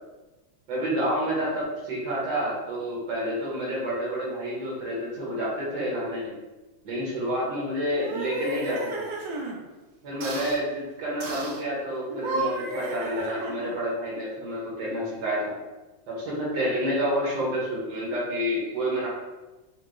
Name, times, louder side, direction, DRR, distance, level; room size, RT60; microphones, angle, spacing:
voice 1, 0.7-6.3 6.8-9.1 10.0-15.5 16.1-19.1, equal, 70° right, -5 dB, 1.5 m, -29 dB
sound 1, 7.9-9.6 10.2-10.6 11.2-11.6 12.1-13.8, right 1 dB, 90° right, 1.3 m, -32 dB
4.7 x 2.0 x 2.5 m, 1.1 s
omnidirectional pair, 2.0 m